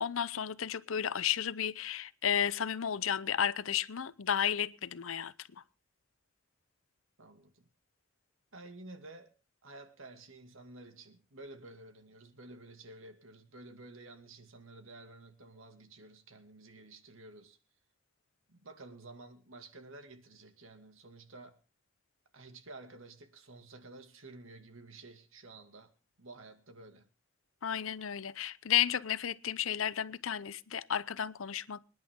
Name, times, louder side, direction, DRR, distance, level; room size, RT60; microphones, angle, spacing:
voice 1, 0.0-5.3 27.6-31.8, left 9 dB, 80° left, 0.7 m, -32 dB
voice 2, 7.2-7.7 8.5-9.3 9.6-17.6 18.5-21.6 22.3-25.9 26.2-27.1, right 2 dB, 75° right, 2.3 m, -52 dB
26.0 x 10.5 x 3.7 m
head